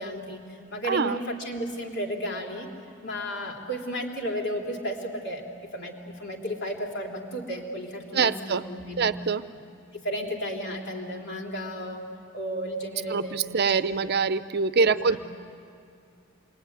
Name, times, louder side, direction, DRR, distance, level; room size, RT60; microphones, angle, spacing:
voice 1, 0.0-2.7 3.0-5.4 5.7-9.2 9.9-12.0 12.3-14.1 14.8-15.2, equal, 55° left, 1 dB, 3.3 m, -33 dB
voice 2, 0.9-1.2 8.1-8.7 9.0-9.4 13.1-15.2, right 5 dB, 50° right, 13 dB, 0.7 m, -24 dB
28.0 x 21.5 x 9.4 m, 2.3 s
head